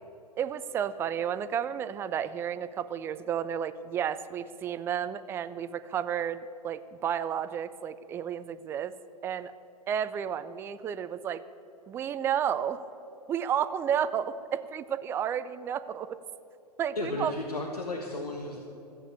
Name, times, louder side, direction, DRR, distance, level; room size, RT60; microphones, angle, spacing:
voice 1, 0.4-8.9 9.2-9.5 9.9-11.4 11.9-12.8 13.3-16.2 16.8-17.3, right 8 dB, 10° right, 14 dB, 0.3 m, -32 dB
voice 2, 16.9-18.6, left 2 dB, 70° left, 2 dB, 1.5 m, -34 dB
14.5 x 8.3 x 8.4 m, 2.9 s
figure-of-eight pair, 105°, 20 cm